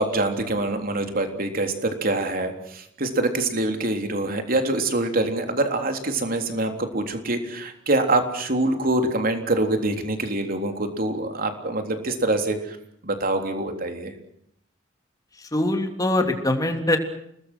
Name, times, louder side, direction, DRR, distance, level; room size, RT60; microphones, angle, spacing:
voice 1, 0.0-12.8 13.0-14.1, right 2 dB, 50° right, 5 dB, 3.6 m, -25 dB
voice 2, 15.5-17.0, left 1 dB, 20° left, 5 dB, 3.1 m, -22 dB
30.0 x 20.5 x 6.3 m, 0.73 s
head